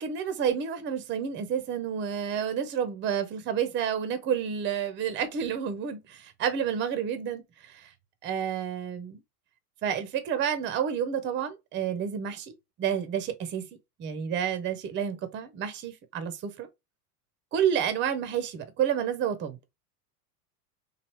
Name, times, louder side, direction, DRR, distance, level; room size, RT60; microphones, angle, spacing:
voice 1, 0.0-7.4 8.2-9.2 9.8-12.5 12.8-13.6 14.0-16.7 17.5-19.6, right 8 dB, 25° right, 0.6 m, -29 dB
3.1 x 2.4 x 3.0 m
hypercardioid pair, 90°, 47 cm